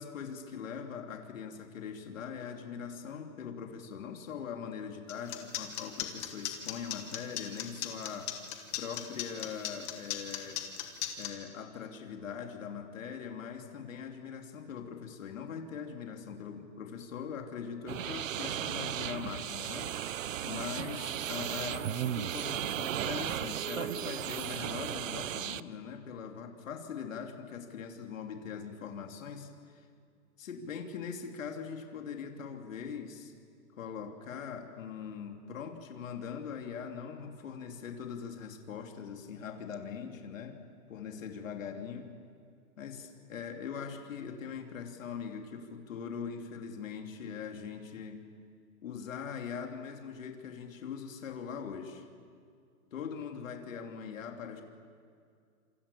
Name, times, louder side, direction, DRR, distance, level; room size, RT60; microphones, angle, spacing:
voice 1, 0.0-10.6 11.2-29.8 30.4-33.3 33.8-40.6 40.9-42.1 42.8-48.2 48.8-52.0 52.9-54.6, left 7 dB, 55° left, 3 dB, 3.3 m, -41 dB
sound 1, 5.1-11.3, left 13 dB, 15° left, 1.3 m, -36 dB
sound 2, 17.9-25.6, right 11 dB, 60° right, 0.7 m, -35 dB
27.0 x 27.0 x 7.1 m, 2.2 s
hypercardioid pair, 175°, 46 cm